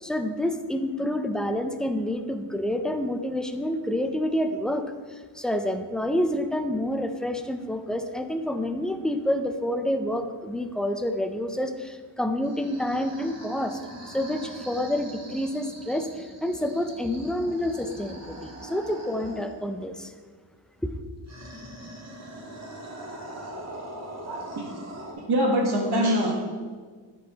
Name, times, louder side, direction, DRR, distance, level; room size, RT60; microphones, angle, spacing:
voice 1, 0.0-13.8 14.1-20.1 20.8-20.9, left 1 dB, ahead, 7 dB, 0.4 m, -28 dB
sound 1, 12.4-19.7 21.3-25.1, right 1 dB, 35° right, 1.4 m, -42 dB
voice 2, 24.2-24.6 25.2-26.3, equal, 55° right, 1 dB, 1.1 m, -24 dB
10.5 x 3.9 x 2.9 m, 1.5 s
cardioid pair, 60°, 46 cm